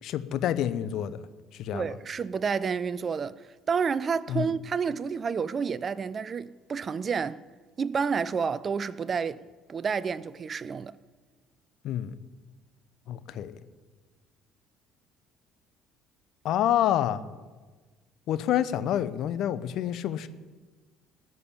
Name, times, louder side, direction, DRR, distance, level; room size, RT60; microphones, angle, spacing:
voice 1, 0.0-1.3 1.5-1.9 4.3-4.5 11.8-12.1 13.1-13.6 16.4-17.2 18.3-20.3, left 11 dB, 60° left, 0.9 m, -28 dB
voice 2, 1.7-7.4 7.8-10.9, right 6 dB, 40° right, 0.6 m, -30 dB
18.5 x 6.9 x 8.7 m
hypercardioid pair, 60°, 0 cm